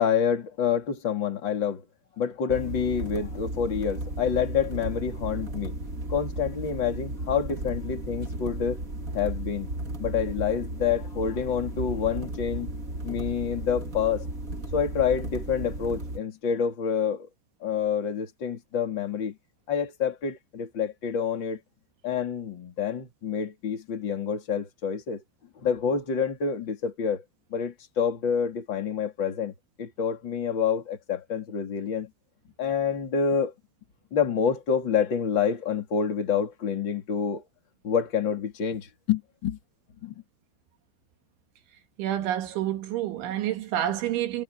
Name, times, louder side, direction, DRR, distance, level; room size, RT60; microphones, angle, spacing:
voice 1, 0.0-1.8 2.2-5.7 6.1-8.8 9.1-9.7 10.0-12.7 13.0-14.2 14.7-17.3 17.6-19.3 19.7-21.6 22.0-25.2 25.6-27.2 27.5-29.5 29.8-32.1 32.6-33.5 34.1-37.4 37.8-39.6 40.0-40.1, left 7 dB, 25° left, 3.3 m, -27 dB
sound 1, 2.5-16.2, right 2 dB, 25° right, 1.8 m, -35 dB
voice 2, 42.0-44.4, right 12 dB, 75° right, 4.2 m, -28 dB
omnidirectional pair, 5.5 m